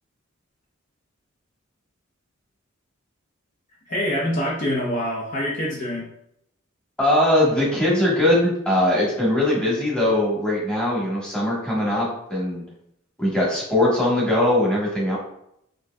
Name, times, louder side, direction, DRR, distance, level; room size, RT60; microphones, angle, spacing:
voice 1, 3.9-6.1, equal, 40° left, -4 dB, 0.7 m, -25 dB
voice 2, 7.0-12.6 13.2-15.2, left 1 dB, 5° left, -6 dB, 1.2 m, -21 dB
5.5 x 2.7 x 2.3 m, 0.76 s
head